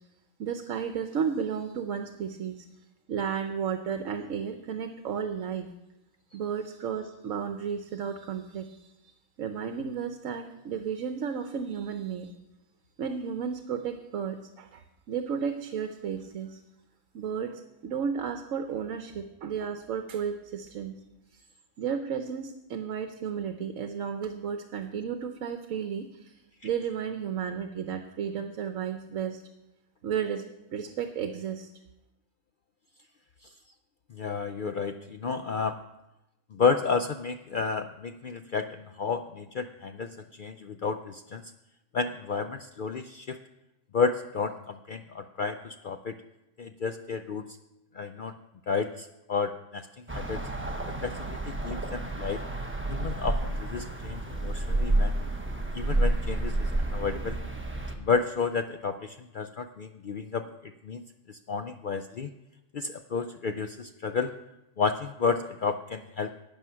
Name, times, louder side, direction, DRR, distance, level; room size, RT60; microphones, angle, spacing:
voice 1, 0.4-2.7 3.1-5.7 6.3-8.9 9.4-12.3 13.0-16.6 17.1-21.0 21.3-21.4 21.8-26.3 26.6-29.4 30.0-30.4 30.7-31.7, right 7 dB, 70° right, 7 dB, 1.2 m, -33 dB
voice 2, 34.1-35.8 36.5-41.4 41.9-43.4 43.9-46.1 46.6-47.4 47.9-48.3 48.7-50.5 50.9-52.4 52.9-55.1 55.7-57.4 58.0-62.3 62.7-64.3 64.8-66.3, left 5 dB, 70° left, 8 dB, 0.4 m, -31 dB
sound 1, 50.1-57.9, right 2 dB, 10° right, 1.0 m, -30 dB
12.0 x 8.8 x 5.7 m, 0.94 s
omnidirectional pair, 1.4 m